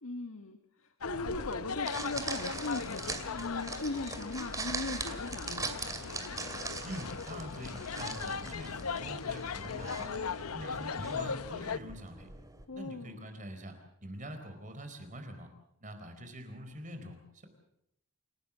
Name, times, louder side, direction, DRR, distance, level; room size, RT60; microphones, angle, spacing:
voice 1, 0.0-5.8 12.7-13.2, left 2 dB, 70° left, 6 dB, 1.6 m, -39 dB
sound 1, 1.0-11.8, left 5 dB, 85° left, 0.8 m, -38 dB
sound 2, 1.3-12.7, right 3 dB, 15° right, 2.5 m, -42 dB
voice 2, 6.8-10.2 10.5-12.3 12.7-13.7 14.0-15.5 15.8-17.5, equal, 35° right, 7 dB, 4.4 m, -44 dB
28.5 x 17.5 x 7.4 m, 0.78 s
head